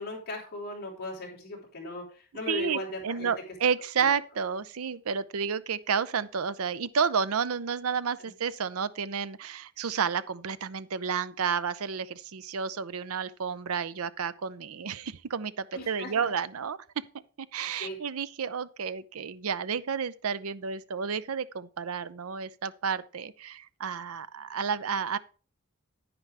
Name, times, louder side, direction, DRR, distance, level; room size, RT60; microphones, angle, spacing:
voice 1, 0.0-3.3 4.0-4.1 8.2-8.3 15.7-16.3 17.6-18.0, left 2 dB, 45° left, 3.9 m, -38 dB
voice 2, 2.5-17.0 17.4-25.2, right 6 dB, 70° right, 0.6 m, -31 dB
9.8 x 9.5 x 3.4 m
head